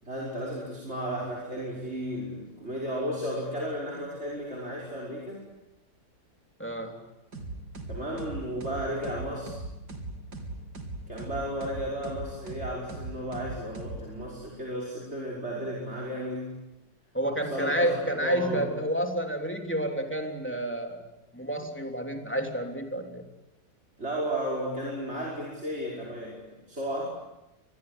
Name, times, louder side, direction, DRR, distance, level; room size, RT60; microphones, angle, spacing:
voice 1, 0.0-5.5 7.9-9.6 11.1-16.6 17.3-18.6 24.0-27.0, equal, 40° right, -2 dB, 5.8 m, -34 dB
voice 2, 6.6-7.0 17.1-21.0 21.3-23.3, right 1 dB, 5° left, 3 dB, 3.3 m, -30 dB
sound 1, 7.3-14.5, right 2 dB, 70° right, 4.1 m, -40 dB
26.5 x 21.5 x 9.9 m, 0.93 s
omnidirectional pair, 1.8 m